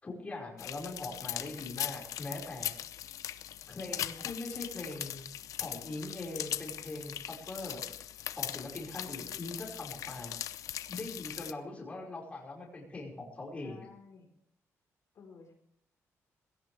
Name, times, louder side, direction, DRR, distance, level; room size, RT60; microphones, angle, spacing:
voice 1, 0.0-2.8 3.7-5.3 5.6-7.8 8.3-10.3 10.9-13.9, left 2 dB, 25° left, -2 dB, 5.1 m, -41 dB
sound 1, 0.6-11.5, left 11 dB, 75° left, 0.7 m, -40 dB
voice 2, 3.8-4.2 13.6-14.3 15.1-15.5, left 5 dB, 60° left, 1 dB, 4.3 m, -54 dB
20.0 x 16.5 x 3.4 m, 0.70 s
cardioid pair, 135°, 6 cm